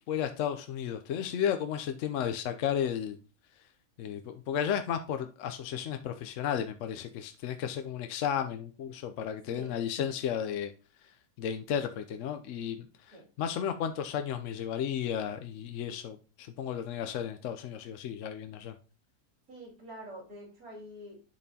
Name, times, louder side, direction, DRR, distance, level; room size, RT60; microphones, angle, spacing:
voice 1, 0.1-3.2 4.0-10.7 11.4-12.8 13.1-18.7, left 9 dB, 65° left, 8 dB, 0.9 m, -33 dB
voice 2, 19.5-21.2, equal, 75° right, -3 dB, 3.0 m, -46 dB
10.5 x 4.2 x 2.7 m, 0.35 s
omnidirectional pair, 1.5 m